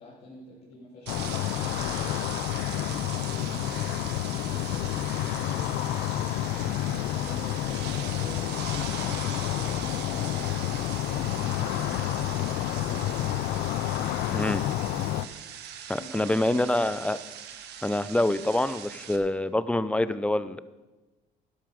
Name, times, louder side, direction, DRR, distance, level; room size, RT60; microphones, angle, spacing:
voice 1, 0.0-2.2 2.6-4.0 4.2-5.8 6.2-13.2 16.0-16.7, left 2 dB, 60° left, -7 dB, 3.3 m, -46 dB
sound 1, 1.1-15.3, left 13 dB, 90° left, 0.5 m, -29 dB
sound 2, 1.1-19.2, right 9 dB, 80° right, 1.3 m, -41 dB
voice 2, 14.3-14.6 15.9-17.2 17.8-20.6, left 1 dB, 5° left, 15 dB, 0.5 m, -26 dB
12.0 x 11.5 x 5.2 m, 1.1 s
cardioid pair, 110°, 17 cm